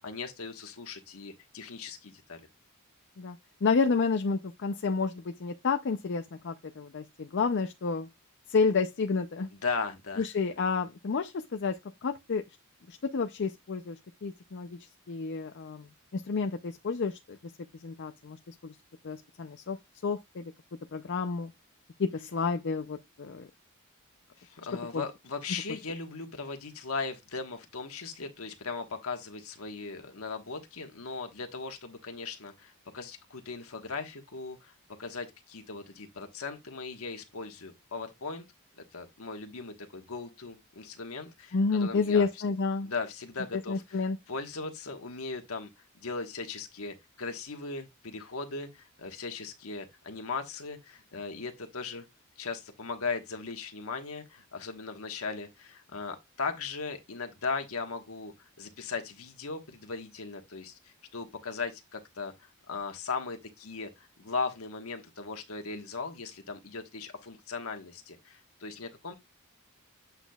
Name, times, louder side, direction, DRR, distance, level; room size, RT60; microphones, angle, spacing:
voice 1, 0.0-2.4 9.5-10.2 24.4-34.7 35.0-38.5 38.8-42.3 42.8-45.7 46.0-52.0 52.4-69.2, left 4 dB, 75° left, 1.3 m, -38 dB
voice 2, 3.2-8.1 8.5-9.5 10.2-11.7 12.0-12.4 12.9-14.8 15.1-15.9 16.1-17.4 17.8-18.7 19.0-19.8 20.0-20.4 20.9-21.5 22.0-23.5 24.9-25.0 41.5-42.9 43.7-44.2, left 4 dB, 55° left, 0.5 m, -30 dB
8.1 x 6.0 x 2.3 m
head